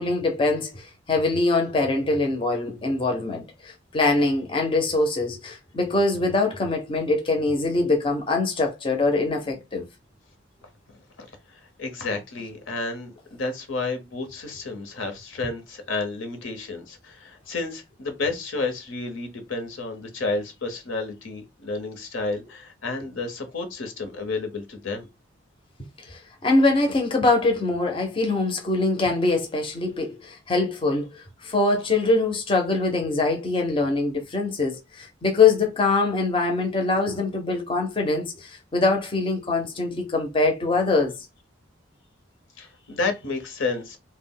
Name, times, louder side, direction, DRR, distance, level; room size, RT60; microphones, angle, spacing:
voice 1, 0.0-9.9 26.0-41.2, left 3 dB, 25° left, 0.5 m, -23 dB
voice 2, 11.2-25.1 42.6-44.0, left 3 dB, 75° left, 0.8 m, -31 dB
2.3 x 2.0 x 3.6 m
head